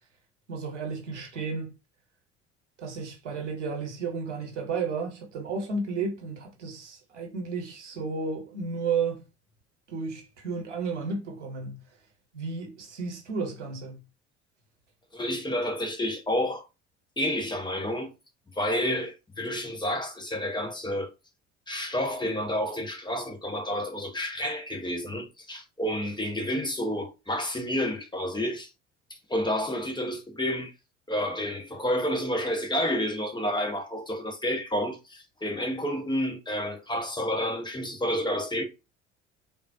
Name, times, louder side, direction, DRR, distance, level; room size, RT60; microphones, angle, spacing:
voice 1, 0.5-1.7 2.8-9.2 9.9-11.8 12.3-14.0, right 4 dB, 85° right, 1.0 m, -33 dB
voice 2, 15.1-16.7 17.2-18.1 18.6-21.1 21.7-28.7 29.3-30.7 31.1-38.6, equal, 15° left, 1.0 m, -30 dB
3.7 x 2.3 x 2.6 m
hypercardioid pair, 60°, 35 cm